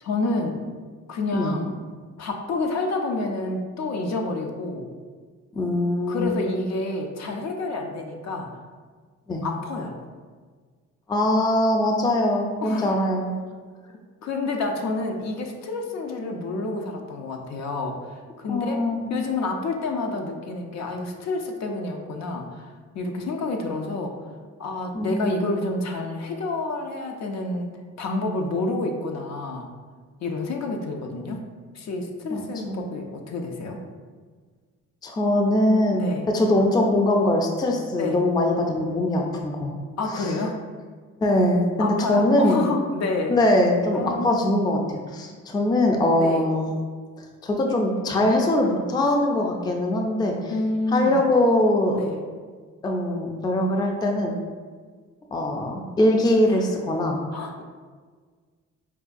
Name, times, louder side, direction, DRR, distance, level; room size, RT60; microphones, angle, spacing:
voice 1, 0.0-0.7 1.1-1.7 2.2-4.9 6.1-8.6 9.4-9.9 12.6-12.9 14.2-18.8 19.1-22.7 22.9-24.1 24.6-29.7 30.2-31.4 31.7-33.8 35.9-36.3 38.0-38.2 40.0-40.6 41.8-43.4 43.9-44.6 46.1-46.5 50.5-51.2 51.9-52.2 57.3-57.6, left 2 dB, 65° left, 3 dB, 0.5 m, -29 dB
voice 2, 5.6-6.3 9.3-9.4 11.1-13.3 18.5-19.2 24.9-25.4 32.3-32.8 35.0-39.7 40.1-40.3 41.2-42.6 43.3-46.7 47.2-50.3 50.9-52.0 52.8-54.3 55.3-57.2, left 1 dB, 15° left, 1 dB, 0.3 m, -22 dB
4.5 x 2.2 x 2.5 m, 1.5 s
cardioid pair, 90°, 30 cm